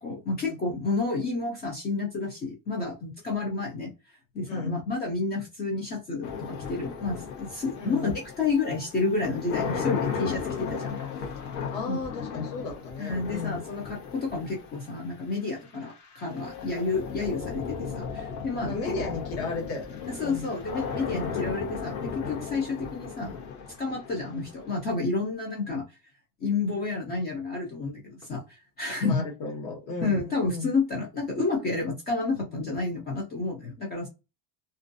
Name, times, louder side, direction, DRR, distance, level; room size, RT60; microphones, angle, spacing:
voice 1, 0.0-3.9 4.3-11.0 11.9-12.0 13.0-18.8 20.1-23.4 23.8-26.0 26.4-29.2 30.0-34.1, left 3 dB, 25° left, 0 dB, 0.3 m, -30 dB
voice 2, 4.5-4.8 7.8-8.1 11.7-13.6 18.6-20.5 29.0-30.7, left 4 dB, 50° left, 0 dB, 1.2 m, -34 dB
sound 1, 6.2-25.3, left 6 dB, 70° left, 1.0 m, -36 dB
2.5 x 2.2 x 2.4 m, 0.27 s
cardioid pair, 165°, 46 cm